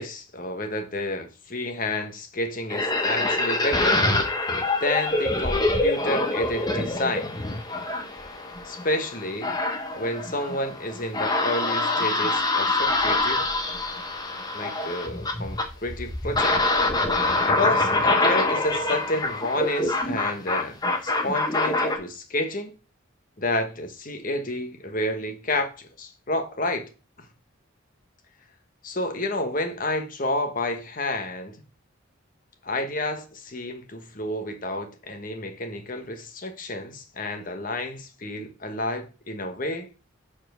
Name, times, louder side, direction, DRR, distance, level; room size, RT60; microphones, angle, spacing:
voice 1, 0.0-4.1 4.8-7.3 8.6-9.5 10.0-13.5 14.5-16.6 17.5-20.8 21.0-22.7 23.4-26.9 27.2-27.3 28.8-31.6 32.6-39.9, left 1 dB, 40° left, 1.2 m, -30 dB
sound 1, 2.7-22.0, left 2 dB, 20° left, 1.0 m, -25 dB
7.1 x 4.4 x 6.2 m
head